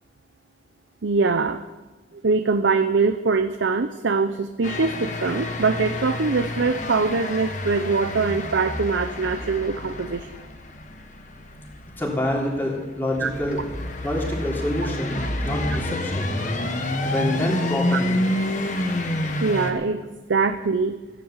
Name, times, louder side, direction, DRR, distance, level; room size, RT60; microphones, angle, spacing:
voice 1, 1.0-1.6 2.2-10.3 13.2-13.3 17.9-18.0 19.4-20.0 20.3-21.0, right 4 dB, 85° right, 9 dB, 0.7 m, -23 dB
sound 1, 4.6-19.7, left 1 dB, 40° left, 1.4 m, -29 dB
voice 2, 12.0-13.6 14.0-16.3 17.0-18.2, left 1 dB, 10° left, -3 dB, 3.2 m, -27 dB
15.5 x 10.5 x 7.3 m, 1.2 s
head